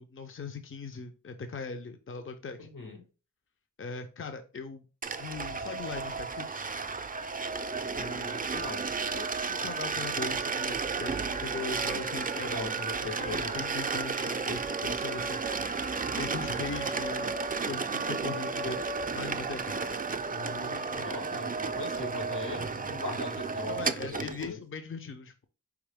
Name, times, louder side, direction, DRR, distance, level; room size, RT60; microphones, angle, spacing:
voice 1, 0.0-2.7 3.8-6.7 9.1-12.5 13.2-17.3 17.7-18.8 19.1-20.0 23.6-25.5, left 4 dB, 40° left, 0.6 m, -40 dB
voice 2, 2.6-3.0 7.9-8.9 12.5-13.6 14.2-14.3 20.3-24.6, left 3 dB, 80° left, 1.6 m, -40 dB
sound 1, 5.0-24.5, right 4 dB, 25° right, 0.4 m, -33 dB
4.8 x 3.0 x 3.4 m
cardioid pair, 40°, 32 cm